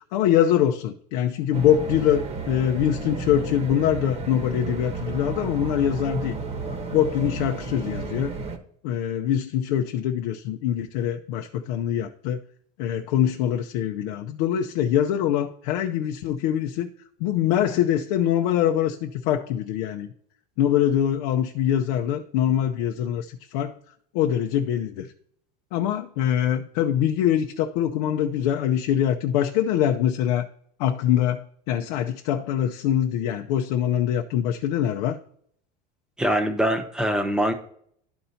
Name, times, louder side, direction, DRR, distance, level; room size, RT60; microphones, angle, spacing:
voice 1, 0.1-6.4 6.9-8.3 8.8-12.4 12.8-16.9 17.2-20.1 20.6-23.7 24.1-25.1 25.7-30.5 30.8-35.2, left 10 dB, 70° left, 0.6 m, -23 dB
sound 1, 1.5-8.6, right 3 dB, 30° right, 1.0 m, -32 dB
voice 2, 36.2-37.5, equal, 5° right, 0.9 m, -23 dB
12.0 x 4.3 x 2.7 m
supercardioid pair, 130°, 21 cm